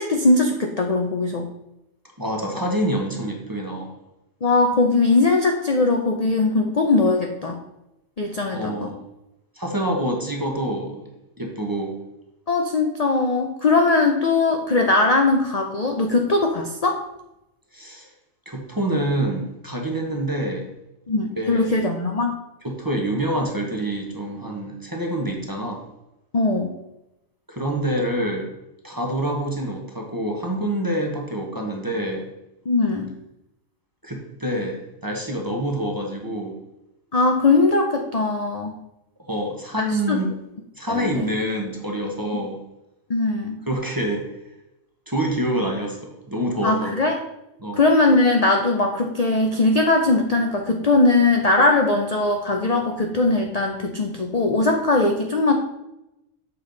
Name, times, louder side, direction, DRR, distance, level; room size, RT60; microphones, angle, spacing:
voice 1, 0.0-1.5 4.4-7.6 8.2-8.9 12.5-17.0 21.1-22.4 26.3-26.7 32.7-33.1 37.1-38.7 39.8-40.2 40.9-41.1 43.1-43.6 46.6-47.2 47.8-55.5, left 3 dB, 45° left, 3 dB, 0.5 m, -20 dB
voice 2, 2.2-4.0 8.5-9.0 9.6-11.1 11.4-12.0 17.7-18.1 18.5-20.7 21.4-21.7 22.6-25.8 27.5-28.5 28.8-32.3 34.0-36.6 39.3-40.3 40.8-42.6 43.7-44.3 45.1-47.0 47.6-47.8, right 1 dB, 15° right, 1 dB, 0.9 m, -26 dB
7.0 x 5.2 x 3.9 m, 0.91 s
omnidirectional pair, 1.5 m